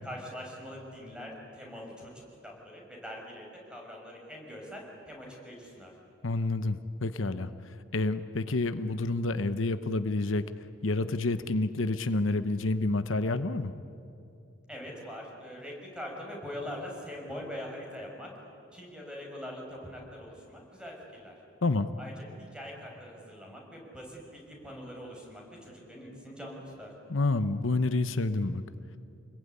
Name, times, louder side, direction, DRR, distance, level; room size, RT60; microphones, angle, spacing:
voice 1, 0.0-5.9 14.7-18.3 18.7-21.4 22.0-22.1 22.5-26.9, equal, 5° right, -1 dB, 6.4 m, -43 dB
voice 2, 6.2-10.4 10.8-13.7 21.6-21.9 27.1-28.6, left 2 dB, 80° left, 11 dB, 0.9 m, -29 dB
28.0 x 21.0 x 9.8 m, 2.6 s
head